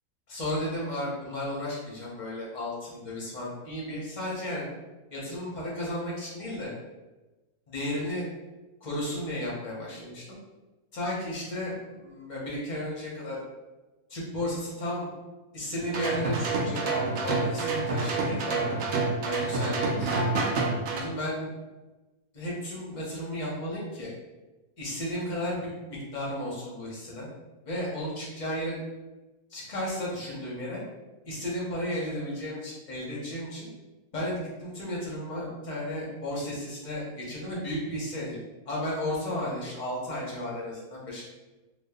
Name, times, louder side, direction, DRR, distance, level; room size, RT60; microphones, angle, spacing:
voice 1, 0.3-4.7 5.1-6.7 7.7-8.3 8.8-10.3 10.9-13.4 14.1-15.1 15.5-18.8 19.2-20.3 20.9-21.5 22.3-24.1 24.8-27.3 27.6-28.8 29.5-30.8 31.2-33.7 34.1-38.4 38.7-41.2, left 1 dB, 35° left, -5 dB, 0.8 m, -34 dB
sound 1, 15.8-21.0, right 3 dB, 70° right, 0.8 m, -28 dB
2.8 x 2.4 x 3.5 m, 1.1 s
omnidirectional pair, 1.7 m